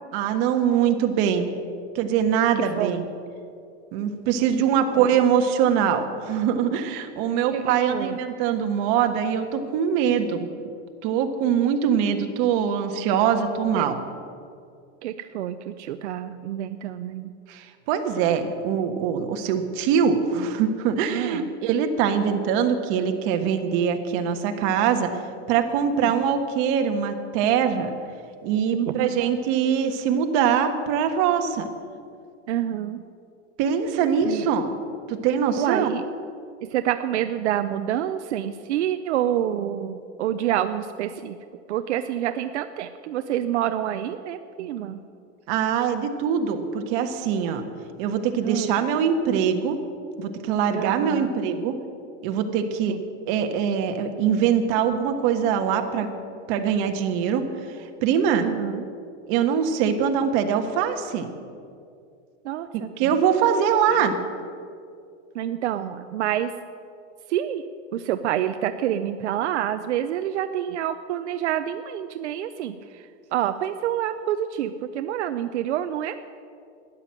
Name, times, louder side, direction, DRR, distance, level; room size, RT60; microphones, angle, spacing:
voice 1, 0.1-1.5 1.9-3.0 3.9-10.5 11.0-14.0 17.5-25.1 25.5-27.9 28.4-31.7 33.6-34.8 35.1-35.9 45.5-47.6 48.0-49.8 50.2-51.7 52.2-53.0 53.3-56.1 56.5-57.8 58.0-58.5 59.3-61.3 63.0-64.1, right 7 dB, 50° right, 6 dB, 1.5 m, -23 dB
voice 2, 7.5-8.2 13.7-13.8 15.0-17.3 21.1-21.4 26.0-26.1 28.7-29.2 32.5-33.0 34.3-34.5 35.6-36.0 36.6-41.4 41.7-45.0 48.4-48.7 50.7-51.3 52.9-53.0 58.4-58.9 62.4-63.1 63.9-64.1 65.3-66.5 67.3-67.6 67.9-73.0 73.3-76.4, right 11 dB, 85° right, 9 dB, 0.7 m, -27 dB
12.5 x 10.0 x 7.5 m, 2.4 s
supercardioid pair, 140°, 34 cm